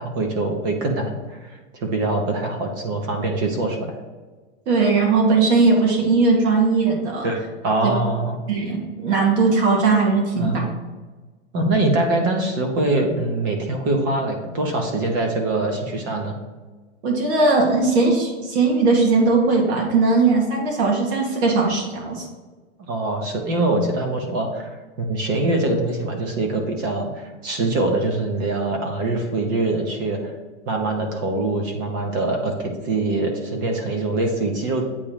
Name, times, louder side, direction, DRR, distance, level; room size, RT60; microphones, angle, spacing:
voice 1, 0.0-4.0 7.2-7.4 7.6-8.4 10.4-10.7 11.5-16.3 22.9-24.7 25.0-30.3 30.7-34.8, right 2 dB, 20° right, 3 dB, 0.4 m, -23 dB
voice 2, 4.7-7.3 7.8-7.9 8.5-10.6 17.0-22.3, right 3 dB, 65° right, -1 dB, 1.9 m, -19 dB
8.5 x 2.9 x 6.4 m, 1.3 s
supercardioid pair, 175°, 36 cm